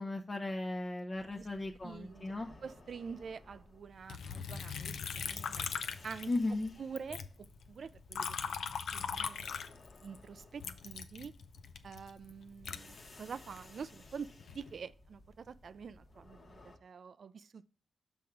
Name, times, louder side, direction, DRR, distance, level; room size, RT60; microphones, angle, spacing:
voice 1, 0.0-2.5 6.3-6.7, left 2 dB, 40° left, 0.6 m, -36 dB
sound 1, 1.1-16.8, left 2 dB, 55° left, 1.1 m, -58 dB
voice 2, 1.8-2.3 2.6-5.7 6.0-6.3 6.8-8.6 8.9-9.6 10.0-11.3 11.8-14.3 14.5-17.6, right 6 dB, 65° right, 0.3 m, -47 dB
Liquid, 4.1-6.7 7.0-10.2 10.6-13.6 14.2-14.7, left 6 dB, 80° left, 0.4 m, -40 dB
6.1 x 3.6 x 5.9 m
supercardioid pair, 50°, 0 cm